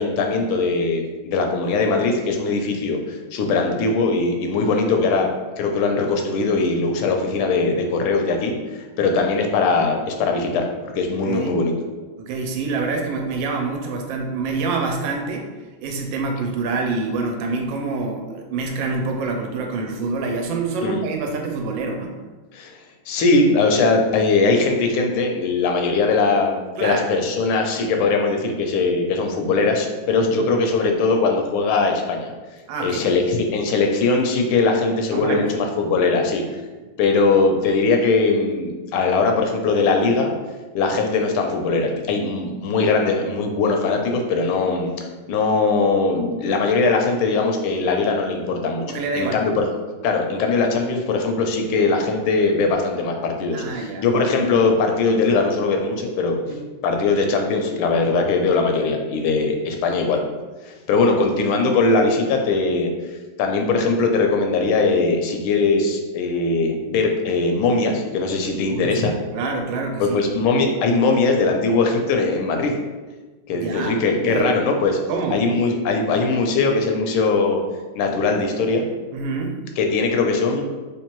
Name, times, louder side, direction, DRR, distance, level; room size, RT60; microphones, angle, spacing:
voice 1, 0.0-5.3 5.6-10.7 10.9-11.7 20.8-21.0 22.5-22.8 23.1-32.3 32.8-36.4 37.0-40.3 40.7-44.9 45.3-48.8 49.1-49.6 50.0-56.4 56.8-60.2 60.6-62.9 63.4-69.1 70.0-72.7 73.5-75.0 75.3-77.6 77.9-78.9 79.8-80.6, left 3 dB, 85° left, 3 dB, 1.4 m, -20 dB
voice 2, 11.2-11.5 12.2-15.5 15.8-22.1 26.8-27.1 30.4-30.6 32.7-33.1 35.1-35.4 48.9-49.4 53.5-54.1 56.4-56.6 68.7-70.2 73.5-74.7 75.1-75.5 79.1-79.5, right 3 dB, 75° right, 2 dB, 1.2 m, -26 dB
3.5 x 3.2 x 3.0 m, 1.3 s
omnidirectional pair, 2.2 m